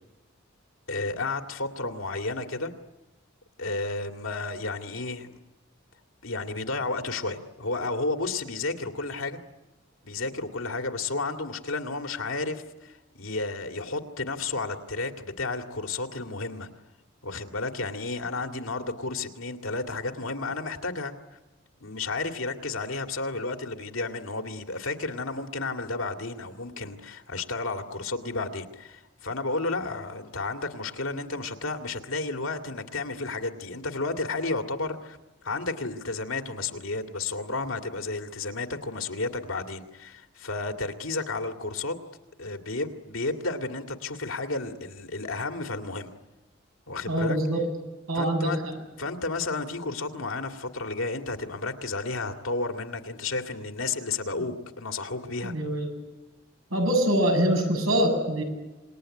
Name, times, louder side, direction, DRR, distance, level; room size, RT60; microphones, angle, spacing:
voice 1, 0.9-2.7 3.6-5.4 6.2-9.4 10.0-16.7 17.2-21.1 21.8-35.2 35.4-42.0 42.4-46.1 46.9-47.4 48.1-48.6 49.0-55.5, left 3 dB, 90° left, 5 dB, 2.3 m, -32 dB
voice 2, 47.1-47.7 48.1-48.7 55.4-55.9 56.7-58.4, right 1 dB, 90° right, 3 dB, 7.9 m, -24 dB
27.0 x 21.0 x 10.0 m, 1.1 s
head